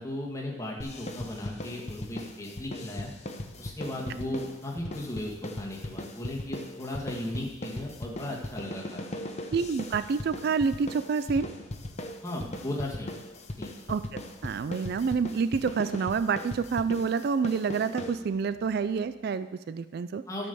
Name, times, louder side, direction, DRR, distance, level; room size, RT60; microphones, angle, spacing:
voice 1, 0.0-3.1 3.6-9.0 12.2-13.1 13.6-13.7 20.3-20.5, left 1 dB, 15° left, -2 dB, 1.8 m, -36 dB
sound 1, 0.8-18.6, left 1 dB, 35° left, 0.9 m, -39 dB
voice 2, 9.5-11.5 13.9-20.2, right 5 dB, 55° right, 13 dB, 0.3 m, -28 dB
12.0 x 5.4 x 6.9 m, 1.1 s
head